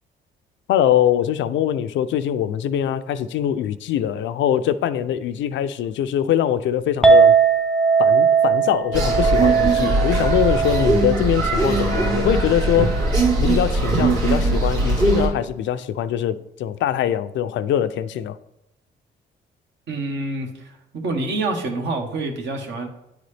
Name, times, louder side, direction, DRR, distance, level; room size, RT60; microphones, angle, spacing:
voice 1, 0.7-7.4 8.0-13.1 13.4-18.4, left 10 dB, 70° left, 0.4 m, -22 dB
Chink clink, 7.0-13.3, right 5 dB, ahead, 0.5 m, -19 dB
sound 1, 8.9-15.3, right 2 dB, 80° right, 2.4 m, -20 dB
voice 2, 19.9-22.9, right 2 dB, 65° right, 1.3 m, -27 dB
10.0 x 3.9 x 3.3 m
cardioid pair, 90°, 20 cm